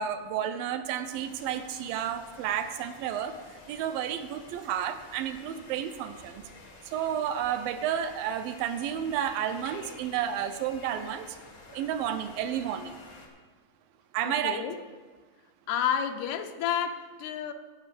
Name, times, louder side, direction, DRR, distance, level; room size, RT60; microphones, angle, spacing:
voice 1, 0.0-6.5 6.9-11.4 11.7-13.0 14.1-14.6, right 9 dB, 80° right, 9 dB, 2.2 m, -31 dB
sound 1, 1.1-13.3, left 3 dB, 70° left, 0.8 m, -51 dB
voice 2, 14.2-14.8 15.7-17.5, left 8 dB, 85° left, 6 dB, 2.7 m, -30 dB
13.5 x 5.9 x 7.4 m, 1.4 s
omnidirectional pair, 4.5 m